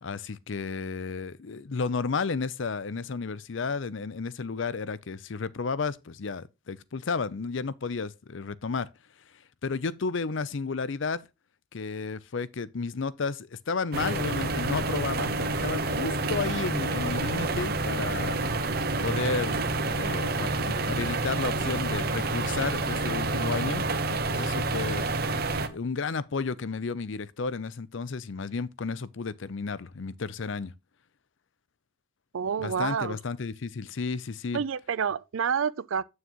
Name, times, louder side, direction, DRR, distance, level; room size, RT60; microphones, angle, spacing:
voice 1, 0.0-8.9 9.6-11.2 11.7-18.4 19.0-25.1 25.7-30.7 32.6-34.6, left 4 dB, 70° left, 0.6 m, -32 dB
fan far near, 13.9-25.7, right 3 dB, 50° right, 0.9 m, -28 dB
voice 2, 32.3-33.2 34.5-36.0, right 7 dB, 85° right, 0.5 m, -28 dB
9.2 x 6.4 x 3.0 m
head